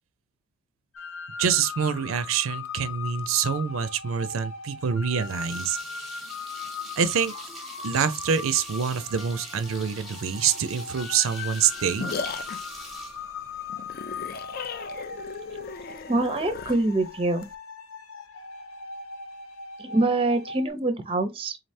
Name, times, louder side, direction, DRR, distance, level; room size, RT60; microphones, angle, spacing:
sound 1, 0.9-20.7, left 4 dB, 80° left, 0.7 m, -39 dB
voice 1, 1.4-5.8 7.0-7.3 7.8-12.1, right 7 dB, 75° right, 0.4 m, -26 dB
sound 2, 5.1-13.9, equal, ahead, 0.8 m, -44 dB
sound 3, 11.5-17.5, left 5 dB, 45° left, 0.3 m, -37 dB
voice 2, 16.1-17.5 19.8-21.6, right 2 dB, 25° right, 0.5 m, -25 dB
3.8 x 3.2 x 2.6 m
head